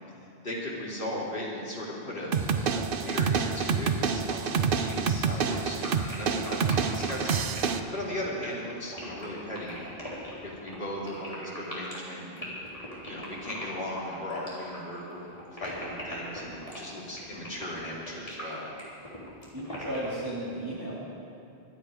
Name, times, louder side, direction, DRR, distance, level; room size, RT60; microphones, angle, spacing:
voice 1, 0.4-9.8 10.4-12.5 13.0-15.3 15.6-18.7, left 1 dB, 55° left, -5 dB, 3.0 m, -37 dB
sound 1, 2.3-7.8, right 6 dB, 60° right, 0.8 m, -27 dB
sound 2, 5.5-20.1, equal, 30° left, 3.6 m, -41 dB
voice 2, 19.5-20.9, right 1 dB, 20° right, -7 dB, 2.4 m, -34 dB
23.5 x 9.5 x 5.0 m, 2.6 s
omnidirectional pair, 1.1 m